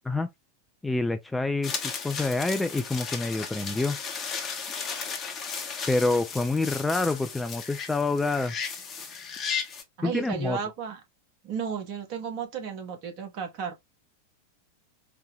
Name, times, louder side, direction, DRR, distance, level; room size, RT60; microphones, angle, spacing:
voice 1, 0.8-1.7 2.0-4.0 5.9-8.5 10.0-10.6, left 3 dB, 5° left, 0.3 m, -27 dB
sound 1, 1.6-9.8, left 6 dB, 25° left, 0.8 m, -35 dB
voice 2, 10.0-11.0 11.4-13.8, right 6 dB, 45° right, 1.1 m, -33 dB
4.1 x 2.2 x 3.3 m
figure-of-eight pair, 90°, 0 cm